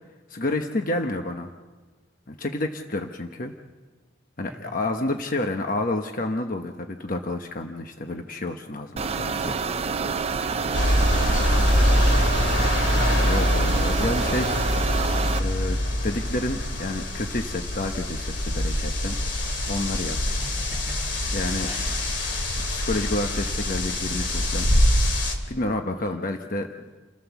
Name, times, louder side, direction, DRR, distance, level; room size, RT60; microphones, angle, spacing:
voice 1, 0.3-1.5 2.3-3.5 4.4-9.6 13.2-14.7 15.4-15.8 16.0-19.2 19.7-20.2 21.3-21.7 22.7-24.7 25.5-26.7, left 2 dB, 45° left, 4 dB, 1.1 m, -29 dB
sound 1, 9.0-15.4, right 5 dB, 35° right, 0.6 m, -27 dB
voice 2, 10.4-10.8 11.3-12.6 20.3-21.4 21.6-22.0, right 1 dB, 10° right, -3 dB, 3.5 m, -41 dB
sound 2, 10.7-25.3, left 1 dB, 70° left, 2.7 m, -24 dB
29.0 x 15.5 x 7.2 m, 1.3 s
head